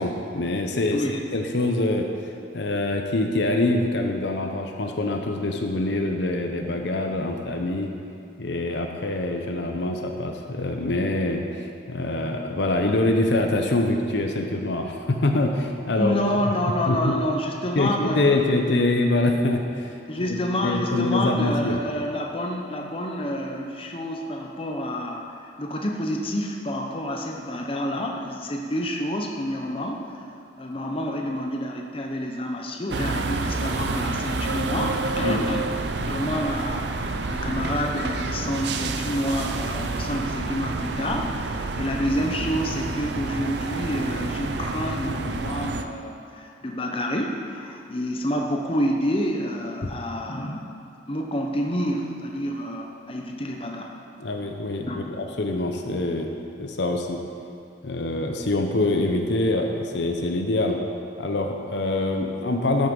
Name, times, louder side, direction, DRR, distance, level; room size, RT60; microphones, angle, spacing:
voice 1, 0.0-2.1 2.5-7.9 8.4-16.1 16.8-17.1 17.8-19.9 20.3-21.8 35.2-35.5 49.8-49.9 54.2-54.9 55.2-56.3 56.6-57.2 57.8-60.8 61.2-62.9, left 2 dB, 65° left, 3 dB, 0.8 m, -25 dB
voice 2, 16.0-18.5 20.1-30.1 30.6-35.8 36.0-50.6 51.1-53.9 54.9-55.1, equal, 30° left, 1 dB, 0.8 m, -28 dB
sound 1, 32.9-45.8, right 3 dB, 60° right, 0.5 m, -29 dB
12.5 x 6.5 x 5.4 m, 2.4 s
head